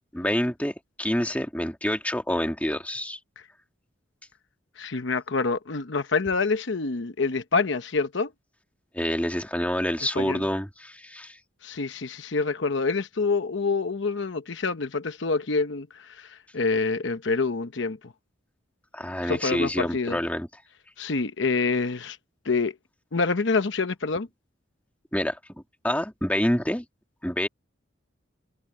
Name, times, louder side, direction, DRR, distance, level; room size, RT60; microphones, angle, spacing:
voice 1, 0.1-3.2 8.9-11.4 18.9-20.5 25.1-25.4 25.8-26.8 27.2-27.5, equal, 5° left, 2.4 m, -27 dB
voice 2, 4.8-8.3 10.2-10.4 11.6-18.0 19.2-20.2 21.0-22.2 22.4-22.7 23.1-24.3, left 4 dB, 70° left, 0.9 m, -26 dB
head